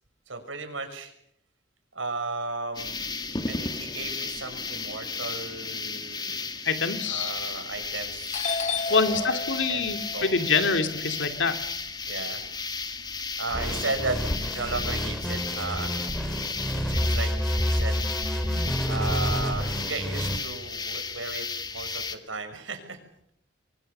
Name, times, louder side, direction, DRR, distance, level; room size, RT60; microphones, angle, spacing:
voice 1, 0.3-1.1 1.9-3.0 3.5-6.5 7.0-8.5 8.9-10.8 12.1-12.4 13.4-15.9 16.7-17.3 17.7-18.0 18.9-23.0, right 3 dB, 80° right, 7 dB, 6.2 m, -35 dB
sound 1, 2.7-22.2, left 4 dB, 20° left, 1.9 m, -34 dB
voice 2, 6.6-7.3 8.9-11.6 18.5-18.7, left 4 dB, 70° left, 7 dB, 2.5 m, -26 dB
Doorbell, 7.7-8.0 8.3-12.5 12.8-14.4, left 4 dB, 40° left, 1.1 m, -34 dB
sound 2, 13.5-20.4, equal, 5° left, 3.4 m, -28 dB
28.5 x 24.0 x 6.7 m, 0.71 s
head